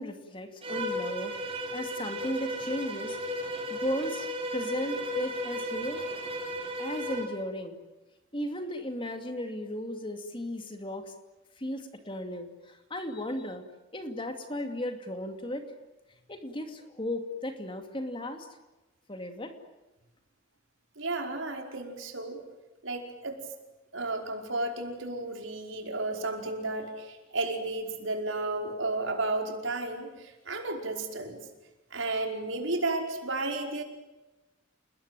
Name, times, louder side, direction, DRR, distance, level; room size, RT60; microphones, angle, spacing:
voice 1, 0.0-3.2 3.7-6.1 6.8-7.8 8.3-11.1 11.6-13.6 13.9-15.7 16.3-18.5 19.1-19.6, left 1 dB, 25° left, 6 dB, 2.5 m, -35 dB
Bowed string instrument, 0.6-7.4, equal, 30° right, 4.8 m, -35 dB
voice 2, 21.0-22.4 22.8-23.4 23.9-31.5 31.9-33.8, right 2 dB, 75° right, 3 dB, 5.1 m, -33 dB
29.5 x 20.5 x 9.2 m, 1.1 s
head